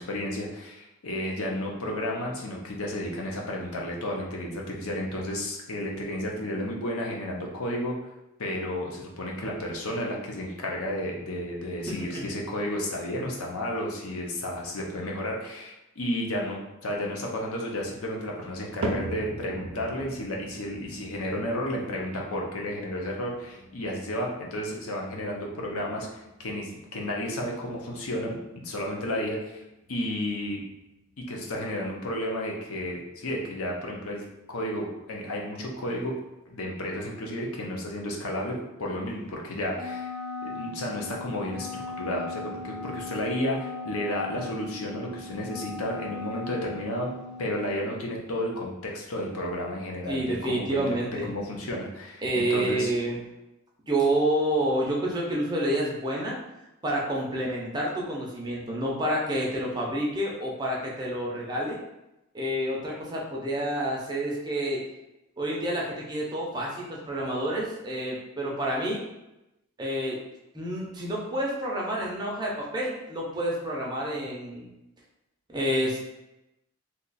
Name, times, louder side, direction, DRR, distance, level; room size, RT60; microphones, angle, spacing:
voice 1, 0.0-8.0 8.4-29.6 29.9-30.6 31.3-36.1 36.5-40.1 40.4-47.1 47.4-52.9, left 1 dB, 85° left, -1 dB, 0.7 m, -32 dB
sound 1, 18.8-35.1 35.5-36.0 36.6-36.7 37.5-37.6, right 2 dB, 80° right, 0.5 m, -42 dB
Wind instrument woodwind instrument, 39.7-47.8, left 3 dB, 10° left, 0.8 m, -38 dB
voice 2, 50.1-51.3 52.2-53.2 53.9-56.4 56.8-61.8 62.3-64.8 65.4-69.0 69.8-70.2 70.5-74.7 75.5-76.0, right 1 dB, 20° right, -3 dB, 0.6 m, -28 dB
2.9 x 2.4 x 3.9 m, 0.93 s
head